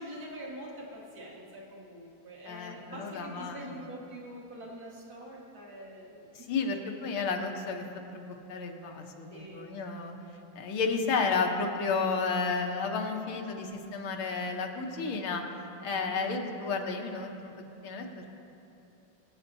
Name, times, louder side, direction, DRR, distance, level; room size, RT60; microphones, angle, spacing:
voice 1, 0.0-6.5 9.3-9.8 13.1-13.4 16.1-16.4, equal, 50° right, -3 dB, 2.0 m, -45 dB
voice 2, 2.5-3.7 6.5-7.9 8.1-10.1 10.6-15.4 15.8-18.3, left 4 dB, 80° left, 2 dB, 1.8 m, -32 dB
22.5 x 8.3 x 2.7 m, 2.9 s
omnidirectional pair, 2.3 m